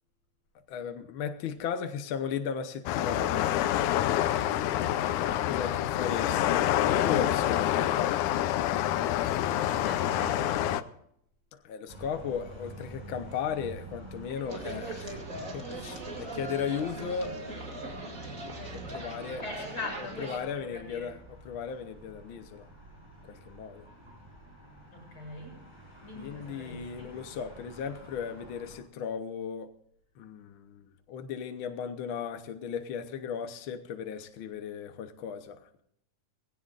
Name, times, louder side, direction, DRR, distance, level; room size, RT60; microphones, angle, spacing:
voice 1, 0.7-3.6 5.4-8.2 9.9-10.0 11.6-17.4 18.7-19.4 20.2-21.2 21.4-22.7 23.3-23.8 26.2-29.7 30.2-35.6, left 7 dB, 65° left, 1.3 m, -36 dB
sound 1, 2.9-10.8, left 12 dB, 85° left, 2.2 m, -27 dB
voice 2, 9.7-10.9 14.3-15.0 16.7-16.8 19.2-21.1 24.9-25.6 26.0-27.2, left 2 dB, 40° left, 8.6 m, -42 dB
sound 2, 11.9-28.8, right 2 dB, 10° right, 6.5 m, -48 dB
sound 3, 14.5-20.4, right 2 dB, 30° right, 2.5 m, -40 dB
20.0 x 17.0 x 2.5 m
omnidirectional pair, 3.4 m